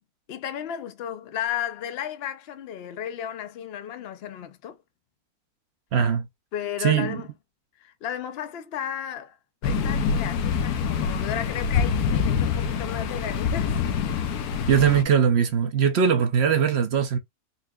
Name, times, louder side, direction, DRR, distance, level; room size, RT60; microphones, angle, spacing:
voice 1, 0.3-4.8 6.5-7.3 7.8-13.8, left 9 dB, 60° left, 0.7 m, -34 dB
voice 2, 5.9-6.3 6.8-7.2 14.7-17.2, right 7 dB, 60° right, 0.7 m, -21 dB
sound 1, 9.6-15.0, left 6 dB, 75° left, 1.2 m, -25 dB
4.3 x 2.8 x 2.3 m
omnidirectional pair, 1.6 m